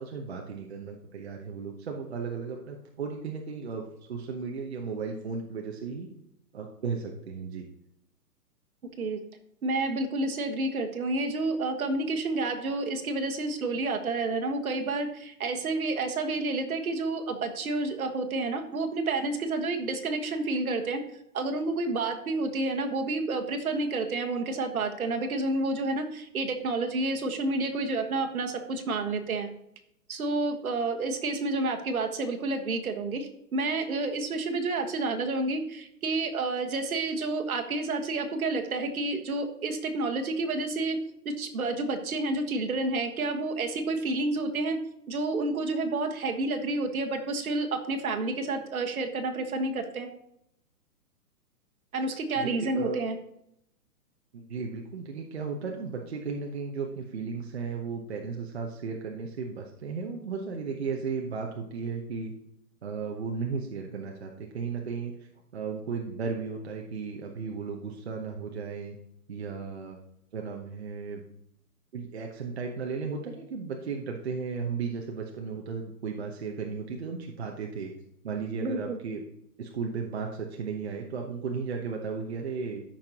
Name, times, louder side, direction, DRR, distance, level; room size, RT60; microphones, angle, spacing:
voice 1, 0.0-6.1 6.5-7.6 52.4-53.0 54.3-62.3 62.8-65.1 65.5-69.0 69.3-70.0 70.3-71.2 71.9-77.9 78.2-79.2 79.6-82.8, right 5 dB, 40° right, 1 dB, 0.9 m, -35 dB
voice 2, 9.6-21.0 21.3-29.5 30.1-41.0 41.2-44.8 45.1-50.1 51.9-53.1 78.6-79.0, right 2 dB, 65° right, 5 dB, 1.5 m, -29 dB
13.5 x 5.8 x 2.9 m, 0.76 s
hypercardioid pair, 175°, 47 cm